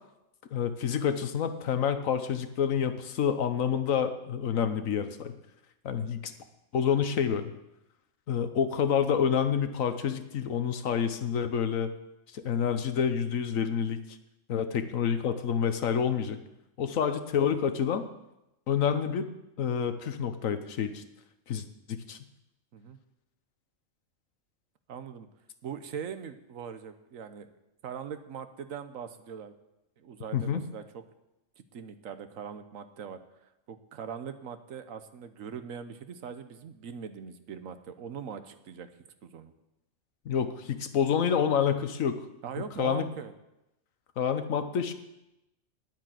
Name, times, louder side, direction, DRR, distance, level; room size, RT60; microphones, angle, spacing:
voice 1, 0.5-5.3 5.8-6.3 6.7-7.5 8.3-11.9 12.3-14.0 14.5-16.4 16.8-18.1 18.7-19.3 19.6-21.0 21.5-22.2 30.3-30.6 40.2-42.2 42.8-43.0 44.2-44.9, left 7 dB, 85° left, 9 dB, 1.4 m, -28 dB
voice 2, 24.9-25.3 25.6-27.5 27.8-29.5 30.0-31.0 31.6-33.2 33.7-38.9 39.2-39.5 42.4-43.3, right 7 dB, 85° right, 10 dB, 1.3 m, -41 dB
10.5 x 9.2 x 7.6 m, 0.92 s
omnidirectional pair, 1.3 m